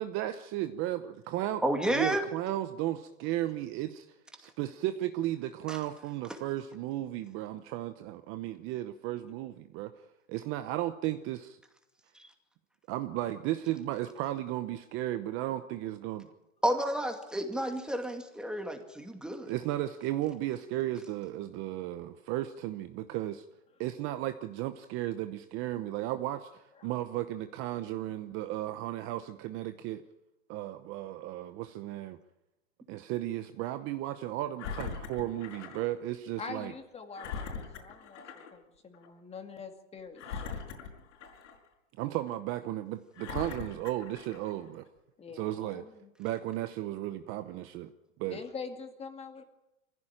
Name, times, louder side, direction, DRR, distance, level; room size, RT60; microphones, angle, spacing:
voice 1, 0.0-4.1 4.4-9.9 10.3-11.6 12.9-16.3 19.5-23.4 23.8-30.0 30.5-32.2 32.9-36.7 42.0-44.8 45.3-45.8 46.2-47.9 48.2-48.4, right 14 dB, 30° right, 10 dB, 0.8 m, -34 dB
voice 2, 1.6-2.2 5.7-5.8 12.2-12.3 16.6-19.5, right 1 dB, ahead, 4 dB, 2.3 m, -31 dB
Engine, 34.6-35.9 36.3-36.4 37.1-38.5 38.9-39.1 40.2-41.7 42.3-42.4 43.1-44.6 45.3-45.4, left 6 dB, 70° left, 5.4 m, -41 dB
voice 3, 36.4-40.6 45.2-46.1 48.2-49.4, left 5 dB, 15° left, 6 dB, 2.2 m, -44 dB
24.0 x 15.5 x 8.9 m, 0.97 s
supercardioid pair, 145°, 39 cm